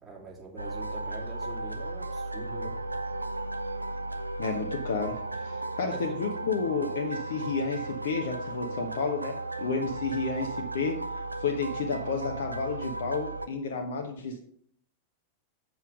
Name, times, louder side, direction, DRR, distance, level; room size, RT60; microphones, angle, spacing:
voice 1, 0.0-2.8 5.8-6.2, right 3 dB, 25° right, -6 dB, 3.0 m, -44 dB
sound 1, 0.6-13.5, right 2 dB, 85° right, 0.5 m, -35 dB
voice 2, 4.4-11.0 11.4-14.4, left 4 dB, 60° left, 3 dB, 0.9 m, -31 dB
7.9 x 7.0 x 5.0 m, 0.64 s
figure-of-eight pair, 90°, 0 cm